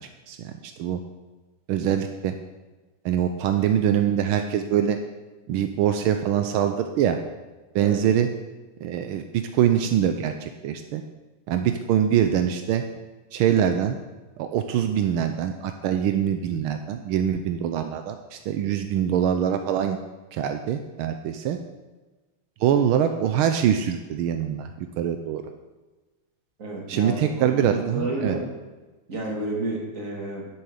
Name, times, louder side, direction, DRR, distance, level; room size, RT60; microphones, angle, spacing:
voice 1, 0.3-1.0 1.7-2.3 3.0-5.0 5.5-7.2 7.7-8.3 8.8-11.0 11.5-12.8 13.3-14.0 14.4-20.0 20.3-21.6 22.6-25.4 26.9-28.4, right 9 dB, 85° right, 7 dB, 1.5 m, -24 dB
voice 2, 26.6-28.4 29.1-30.5, right 2 dB, 40° right, -2 dB, 2.8 m, -30 dB
10.0 x 7.9 x 6.5 m, 1.2 s
omnidirectional pair, 2.3 m